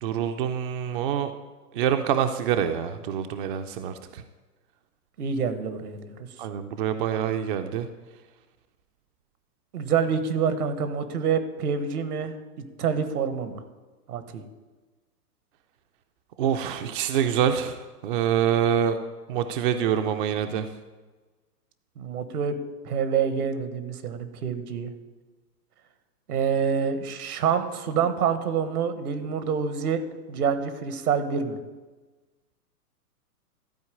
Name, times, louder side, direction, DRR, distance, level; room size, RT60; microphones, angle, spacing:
voice 1, 0.0-1.3 1.7-4.2 6.4-7.9 16.4-19.0 19.3-20.7, right 9 dB, 35° right, 7 dB, 0.6 m, -26 dB
voice 2, 5.2-6.2 9.7-12.3 12.8-13.6 14.1-14.4 22.0-22.6 22.8-24.9 26.3-30.0 30.3-31.6, right 6 dB, 70° right, 10 dB, 1.4 m, -27 dB
13.0 x 4.5 x 8.5 m, 1.2 s
hypercardioid pair, 125°, 47 cm